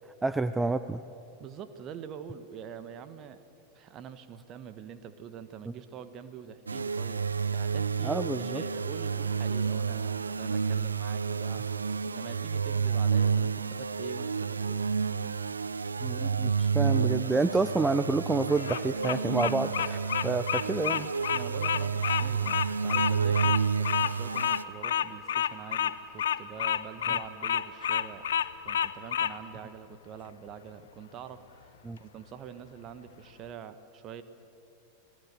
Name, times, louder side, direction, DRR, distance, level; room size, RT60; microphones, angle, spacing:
voice 1, 0.2-1.0 5.7-5.8 8.0-8.6 16.0-21.1 31.8-32.0, right 3 dB, 10° right, 12 dB, 0.6 m, -29 dB
voice 2, 1.4-3.4 3.7-7.2 7.5-14.9 21.2-28.2 28.6-34.2, right 8 dB, 35° right, 11 dB, 1.5 m, -45 dB
sound 1, 6.7-24.6, right 6 dB, 75° right, 0.6 m, -30 dB
Bird vocalization bird call bird song, 18.5-29.3, left 10 dB, 60° left, 0.7 m, -29 dB
29.5 x 19.0 x 6.9 m, 2.7 s
figure-of-eight pair, 90°, 0 cm